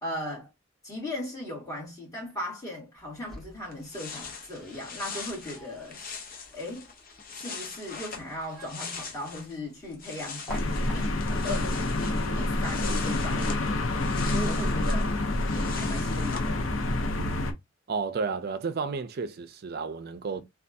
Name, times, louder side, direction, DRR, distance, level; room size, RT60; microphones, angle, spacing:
voice 1, 0.0-0.5 0.8-6.2 6.5-6.9 7.4-10.5 10.9-16.7, left 1 dB, 15° left, 1.8 m, -38 dB
sound 1, 3.0-11.5, left 1 dB, ahead, 1.6 m, -49 dB
sound 2, 3.4-3.5 3.7-9.6 9.8-16.5, left 5 dB, 45° left, 0.9 m, -42 dB
sound 3, 10.5-17.5, left 2 dB, 80° left, 0.6 m, -27 dB
voice 2, 17.9-20.4, right 4 dB, 50° right, 0.5 m, -32 dB
3.3 x 2.3 x 2.6 m
head